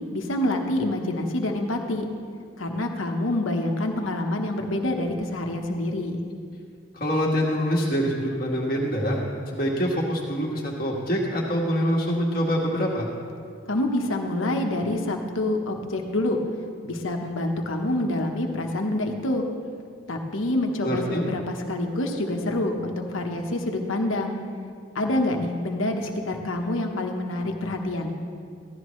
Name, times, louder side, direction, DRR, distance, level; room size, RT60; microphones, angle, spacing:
voice 1, 0.1-2.0 2.6-6.2 13.7-16.4 16.8-19.5 20.1-24.4 24.9-28.1, left 1 dB, 80° left, 3 dB, 1.1 m, -27 dB
voice 2, 6.9-9.2 9.5-13.1 20.8-21.2, equal, 45° left, -4 dB, 1.6 m, -25 dB
15.0 x 12.5 x 3.2 m, 2.3 s
head